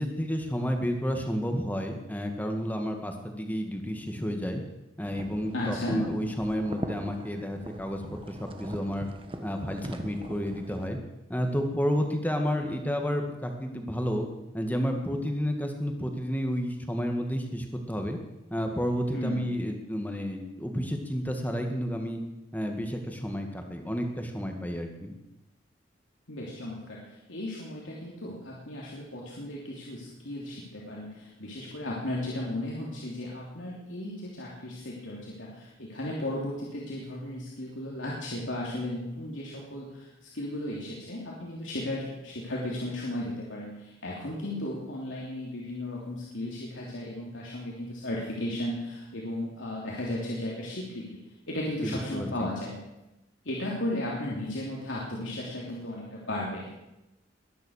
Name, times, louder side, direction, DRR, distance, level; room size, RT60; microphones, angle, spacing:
voice 1, 0.0-4.6 5.0-9.1 9.4-11.0 11.3-14.3 14.5-18.2 18.5-22.2 22.5-25.2 51.8-52.5, equal, 10° left, 4 dB, 1.9 m, -31 dB
sound 1, 5.0-10.9, right 1 dB, 30° right, 1.4 m, -41 dB
voice 2, 5.5-6.0 19.1-19.5 26.3-51.2 51.5-52.7 53.4-56.7, left 1 dB, 90° left, -4 dB, 3.2 m, -35 dB
21.0 x 10.5 x 6.6 m, 0.96 s
head